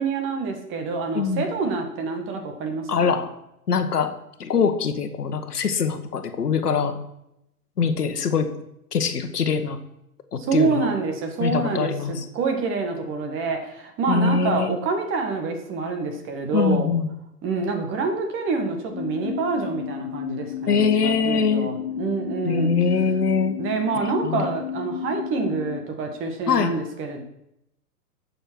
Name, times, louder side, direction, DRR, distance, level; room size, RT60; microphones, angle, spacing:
voice 1, 0.0-3.2 10.4-16.9 17.4-22.7 23.6-27.2, right 4 dB, 25° right, 4 dB, 1.7 m, -27 dB
voice 2, 1.1-1.5 2.9-3.3 3.7-4.1 4.4-7.0 7.8-8.5 8.9-9.8 10.3-10.9 11.4-12.2 14.1-14.7 16.5-17.1 20.7-21.7 22.4-23.6 24.2-24.5 26.5-26.7, left 5 dB, 75° left, 8 dB, 1.3 m, -23 dB
sound 1, 18.9-25.8, left 9 dB, 45° left, 1.3 m, -32 dB
11.0 x 6.9 x 4.6 m, 0.81 s
figure-of-eight pair, 115°, 47 cm